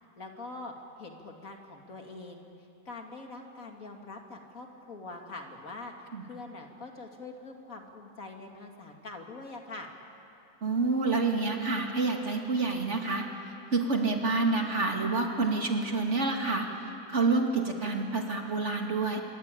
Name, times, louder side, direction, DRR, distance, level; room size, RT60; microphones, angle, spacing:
voice 1, 0.2-0.7 1.0-2.4 2.9-5.9 6.2-9.9, left 3 dB, 60° left, 2 dB, 2.7 m, -44 dB
voice 2, 10.6-13.3 13.7-16.7 17.1-19.2, right 3 dB, 45° right, 2 dB, 2.7 m, -28 dB
26.0 x 24.0 x 9.1 m, 2.7 s
omnidirectional pair, 1.7 m